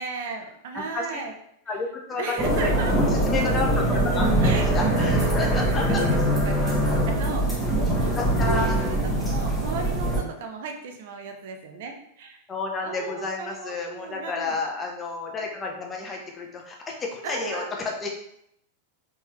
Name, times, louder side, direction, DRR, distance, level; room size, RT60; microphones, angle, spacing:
voice 1, 0.0-1.3 2.2-2.9 4.4-5.6 6.0-12.4 12.8-14.6 17.2-17.8, right 4 dB, 55° right, 4 dB, 0.8 m, -35 dB
voice 2, 0.7-1.1 1.7-2.7 3.0-6.0 8.0-8.8 12.5-18.1, left 3 dB, 20° left, 0 dB, 1.0 m, -31 dB
sound 1, 2.4-10.2, right 1 dB, 5° right, 1.5 m, -23 dB
4.4 x 3.7 x 3.1 m, 0.74 s
figure-of-eight pair, 90°, 0 cm